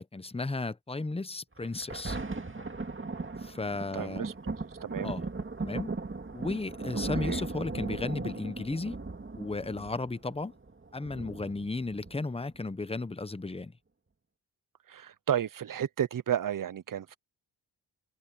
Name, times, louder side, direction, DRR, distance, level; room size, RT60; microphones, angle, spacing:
voice 1, 0.0-2.2 3.4-4.2 5.0-5.2 5.6-5.9 6.3-9.0 9.3-10.5 10.9-13.7, left 3 dB, 15° left, 0.8 m, -34 dB
Thunder, 1.6-12.6 13.2-13.3, right 3 dB, 30° right, 2.2 m, -37 dB
voice 2, 3.9-4.6 4.8-5.1 7.2-7.4 14.9-17.2, right 9 dB, 50° right, 0.6 m, -32 dB
wide cardioid pair, 90°, 43 cm